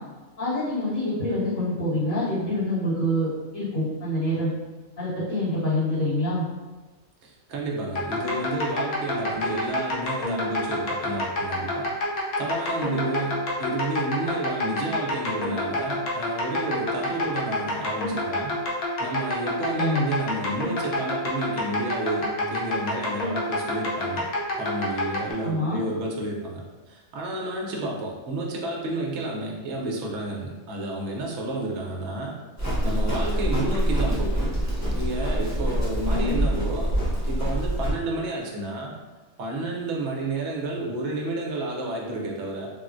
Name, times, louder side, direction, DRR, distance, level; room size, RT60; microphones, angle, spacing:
voice 1, 0.4-4.5 5.0-6.4 19.7-20.1 25.4-25.8 36.1-36.5, left 1 dB, 90° left, -14 dB, 1.9 m, -26 dB
voice 2, 7.2-11.9 12.2-18.5 19.0-24.2 24.6-26.6 26.9-32.3 32.6-34.4 34.9-36.9 37.3-38.9 39.4-42.7, right 2 dB, 65° right, -2 dB, 0.9 m, -31 dB
sound 1, 8.0-25.3, left 1 dB, 60° left, 0.8 m, -28 dB
Livestock farm animals working animals, 32.6-37.9, right 1 dB, 25° left, 0.3 m, -25 dB
3.6 x 2.0 x 2.5 m, 1.2 s
omnidirectional pair, 1.4 m